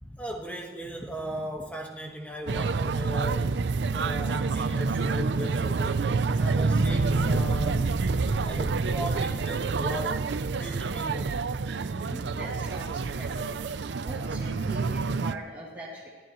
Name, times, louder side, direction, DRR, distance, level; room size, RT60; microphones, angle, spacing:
voice 1, 0.0-3.6 3.9-6.1 6.4-7.9 8.4-10.3 10.6-11.5, equal, 10° left, 0 dB, 1.4 m, -37 dB
sound 1, 2.5-15.4, right 4 dB, 85° right, 0.5 m, -28 dB
sound 2, 6.5-10.6, equal, 55° right, 2.1 m, -36 dB
voice 2, 11.8-13.8 14.0-16.1, right 1 dB, 10° right, -8 dB, 3.0 m, -41 dB
24.0 x 14.5 x 3.1 m, 1.3 s
head